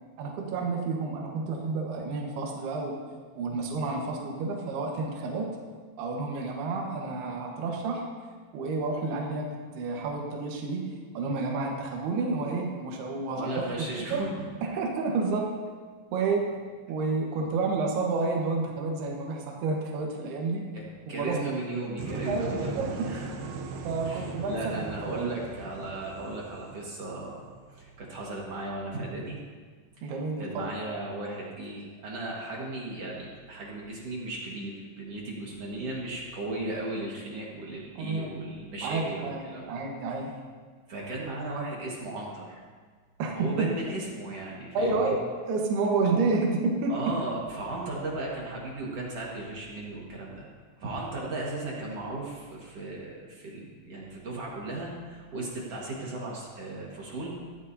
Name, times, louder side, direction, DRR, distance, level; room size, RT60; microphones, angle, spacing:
voice 1, 0.2-3.0 3.4-5.5 6.0-8.1 8.5-14.2 14.6-15.5 16.1-16.5 16.9-20.7 21.1-21.4 22.3-23.1 23.8-25.3 30.0-30.7 38.0-38.3 38.8-39.4 39.7-40.3 43.2-43.7 44.7-45.2 45.5-46.9, right 3 dB, 70° right, -1 dB, 3.3 m, -30 dB
voice 2, 13.3-14.3 20.7-22.8 23.1-23.3 24.0-27.4 27.7-29.4 30.0-39.7 40.9-42.6 43.3-45.1 46.1-46.2 46.9-50.5 50.8-57.3, right 2 dB, 50° right, -4 dB, 2.1 m, -36 dB
sound 1, 22.0-27.8, right 4 dB, 90° right, 3.2 m, -39 dB
15.0 x 13.0 x 2.8 m, 1.5 s
omnidirectional pair, 4.9 m